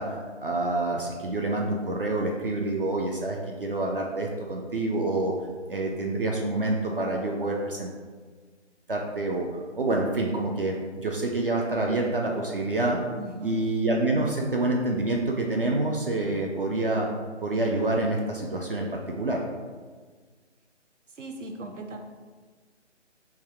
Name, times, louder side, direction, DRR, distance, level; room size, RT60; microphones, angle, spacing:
voice 1, 0.0-5.3 5.7-7.9 8.9-9.5 9.7-13.0 13.4-17.1 17.4-19.4, right 2 dB, 50° right, 0 dB, 0.4 m, -27 dB
voice 2, 13.2-13.6 21.1-22.0, right 3 dB, 80° right, 3 dB, 0.7 m, -38 dB
3.3 x 2.4 x 4.3 m, 1.5 s
figure-of-eight pair, 145°, 36 cm